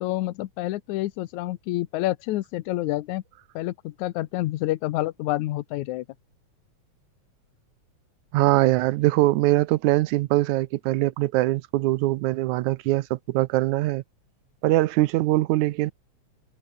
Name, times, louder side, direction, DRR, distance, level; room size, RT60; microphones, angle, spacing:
voice 1, 0.0-3.2 3.6-6.1, left 16 dB, 80° left, 2.2 m, -28 dB
voice 2, 8.3-14.0 14.6-15.9, right 17 dB, 85° right, 2.1 m, -22 dB
omnidirectional pair, 3.4 m